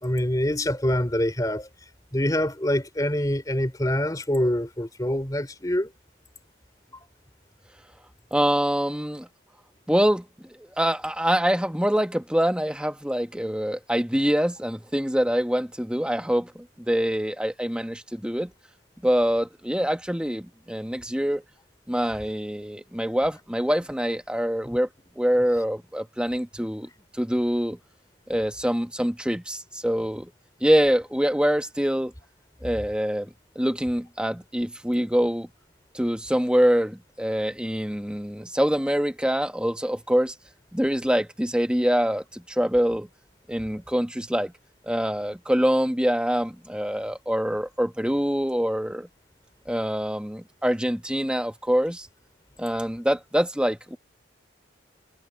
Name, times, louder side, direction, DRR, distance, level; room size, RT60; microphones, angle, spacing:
voice 1, 0.0-1.7 2.1-5.9, left 1 dB, 20° left, 3.3 m, -25 dB
voice 2, 8.3-9.3 9.9-18.5 19.0-21.4 21.9-24.9 25.2-27.8 28.3-30.3 30.6-32.1 32.6-35.5 35.9-40.3 40.7-43.1 43.5-44.5 44.9-49.1 49.7-52.1 52.6-54.0, equal, 5° right, 1.4 m, -25 dB
head